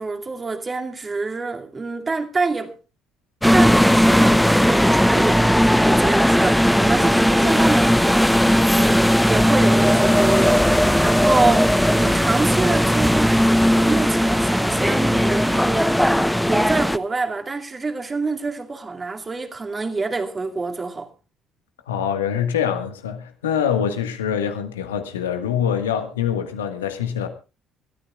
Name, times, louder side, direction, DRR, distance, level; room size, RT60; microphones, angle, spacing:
voice 1, 0.0-2.7 3.5-21.1, right 3 dB, 30° right, 2.4 m, -26 dB
sound 1, 3.4-17.0, equal, 5° left, 0.9 m, -17 dB
voice 2, 21.9-27.3, left 8 dB, 80° left, 1.6 m, -24 dB
26.5 x 13.0 x 2.4 m
figure-of-eight pair, 50°, 0 cm